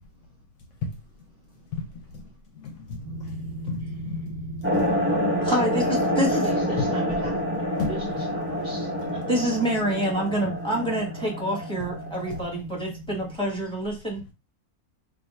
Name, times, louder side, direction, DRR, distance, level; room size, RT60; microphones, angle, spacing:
voice 1, 1.7-2.2 2.5-3.4 3.7-4.2 4.7-4.8 6.8-6.9 7.2-7.3 7.8-8.3 8.7-8.8 11.8-11.9 12.3-12.4 14.2-14.3, left 4 dB, 65° left, 0.9 m, -34 dB
sound 1, 3.0-13.4, right 1 dB, 90° right, 1.1 m, -37 dB
sound 2, 4.6-12.6, equal, 15° right, 0.4 m, -28 dB
voice 2, 5.4-6.5 9.3-11.1 11.4-14.2, equal, 5° left, 1.0 m, -27 dB
voice 3, 6.4-8.0 8.3-9.2, right 2 dB, 55° right, 0.7 m, -40 dB
2.7 x 2.3 x 4.1 m
omnidirectional pair, 1.5 m